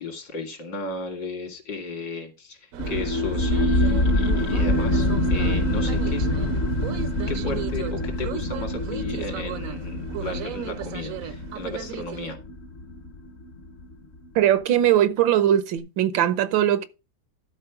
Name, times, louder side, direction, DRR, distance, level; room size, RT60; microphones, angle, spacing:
voice 1, 0.0-6.2 7.3-12.4, left 3 dB, 70° left, 3.0 m, -34 dB
sound 1, 2.7-12.3, right 10 dB, 65° right, 0.8 m, -35 dB
sound 2, 2.8-13.9, left 1 dB, 45° left, 0.9 m, -25 dB
voice 2, 14.3-16.9, right 11 dB, 85° right, 1.6 m, -20 dB
12.0 x 4.4 x 5.8 m
omnidirectional pair, 2.0 m